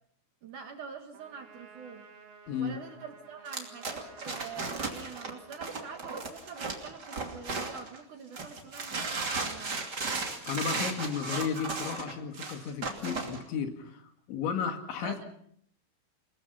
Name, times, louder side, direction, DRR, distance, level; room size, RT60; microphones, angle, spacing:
voice 1, 0.4-2.0 2.6-9.8 15.0-15.3, right 5 dB, 55° right, 5 dB, 2.6 m, -45 dB
Trumpet, 1.1-6.4, right 5 dB, 75° right, 5.1 m, -54 dB
sound 1, 3.5-8.0 8.3-13.4, right 3 dB, 30° right, 2.5 m, -35 dB
voice 2, 10.5-14.0 14.3-15.1, left 6 dB, 80° left, 6 dB, 4.6 m, -33 dB
29.0 x 20.0 x 5.6 m, 0.65 s
omnidirectional pair, 5.3 m